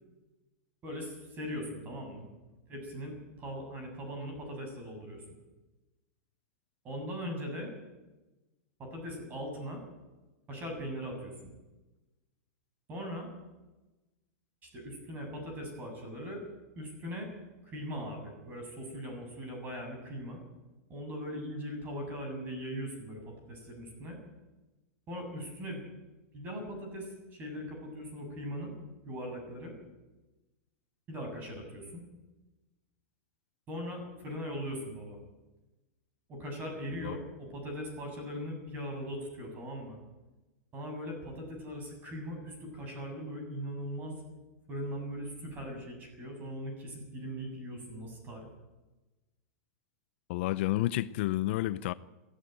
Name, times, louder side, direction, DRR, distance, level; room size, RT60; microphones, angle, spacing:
voice 1, 0.8-2.3 2.7-5.2 6.8-7.7 8.8-9.8 10.5-11.5 12.9-13.3 14.6-16.4 16.8-17.3 17.6-20.4 20.9-24.2 25.1-25.8 26.3-28.7 29.0-29.7 31.1-32.0 33.7-35.2 36.3-40.0 40.7-44.2 44.7-48.5, equal, 20° right, 3 dB, 7.6 m, -40 dB
voice 2, 50.3-51.9, left 16 dB, 50° left, 15 dB, 0.6 m, -30 dB
22.5 x 14.5 x 9.3 m, 1.1 s
supercardioid pair, 160°, 8 cm